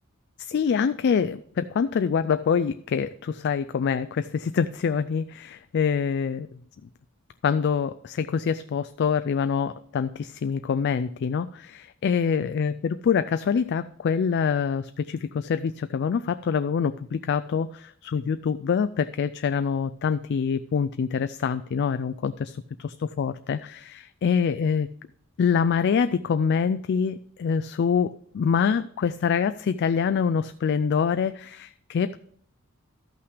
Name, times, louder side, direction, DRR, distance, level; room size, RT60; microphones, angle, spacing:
voice 1, 0.4-6.5 7.4-24.9 25.4-32.2, left 6 dB, 50° left, 11 dB, 0.3 m, -25 dB
13.0 x 5.7 x 5.0 m, 0.64 s
head